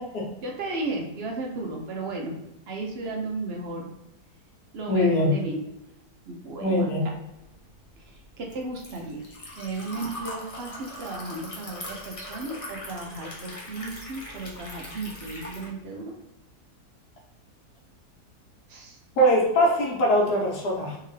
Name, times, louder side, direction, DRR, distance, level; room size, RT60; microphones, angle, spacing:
voice 1, 0.4-2.3 2.7-3.9 4.7-5.6 6.3-7.2 8.1-9.2 9.6-16.1 18.7-19.0, right 2 dB, 60° right, 1 dB, 0.6 m, -34 dB
voice 2, 4.9-5.3 6.6-7.0 19.2-21.0, equal, 75° left, -2 dB, 1.5 m, -22 dB
Liquid, 7.4-15.7, left 1 dB, 40° left, 0.5 m, -40 dB
3.4 x 2.8 x 3.1 m, 0.96 s
omnidirectional pair, 1.7 m